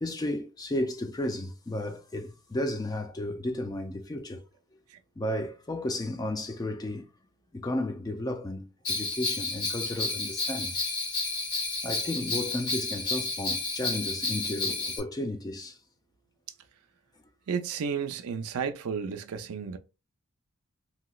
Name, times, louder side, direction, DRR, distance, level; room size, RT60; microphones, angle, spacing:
voice 1, 0.0-4.4 5.2-7.1 7.5-10.8 11.8-15.8, left 1 dB, 15° left, 0.3 m, -33 dB
Bell, 8.8-15.0, left 3 dB, 85° left, 1.3 m, -31 dB
voice 2, 17.5-19.8, right 6 dB, 80° right, 0.4 m, -32 dB
3.0 x 2.8 x 2.3 m
head